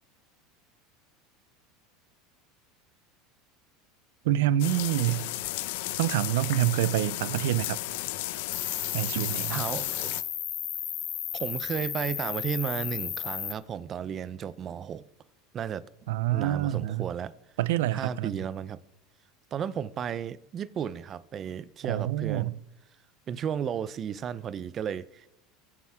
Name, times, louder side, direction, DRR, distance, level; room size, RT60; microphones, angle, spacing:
voice 1, 4.2-5.2 6.0-7.8 8.9-9.6 16.1-17.1 17.6-18.3 21.9-22.5, right 13 dB, 80° right, 0.6 m, -26 dB
sound 1, 4.6-10.2, left 17 dB, 75° left, 0.8 m, -34 dB
Cricket, 8.5-13.5, left 10 dB, 40° left, 1.8 m, -34 dB
voice 2, 9.5-10.1 11.3-15.0 15.5-15.8 16.3-17.3 17.9-18.8 19.5-22.6 23.3-25.3, right 8 dB, 35° right, 0.8 m, -33 dB
24.0 x 9.7 x 3.7 m
supercardioid pair, 115°, 0 cm